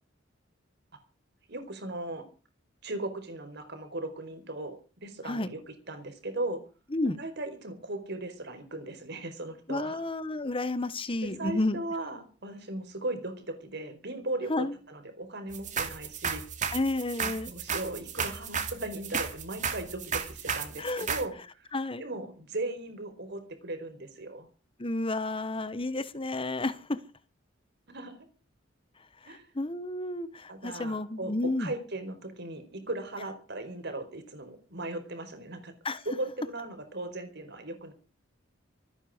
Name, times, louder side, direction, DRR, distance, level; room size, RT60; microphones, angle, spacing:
voice 1, 1.5-2.3 2.8-5.6 5.9-6.6 7.2-10.0 11.2-16.4 17.2-21.3 21.6-21.7 22.0-24.5 27.9-28.2 29.3-29.4 30.5-31.3 31.6-35.7 36.0-37.9, right 2 dB, 60° right, 7 dB, 4.7 m, -37 dB
voice 2, 9.7-11.8 14.5-14.8 16.7-17.5 20.8-21.1 21.7-22.0 24.8-27.0 29.2-31.7 35.8-36.0, left 2 dB, 30° left, 14 dB, 1.1 m, -31 dB
sound 1, 15.5-21.2, right 6 dB, 40° right, 2.6 m, -33 dB
25.0 x 10.0 x 5.1 m, 0.36 s
head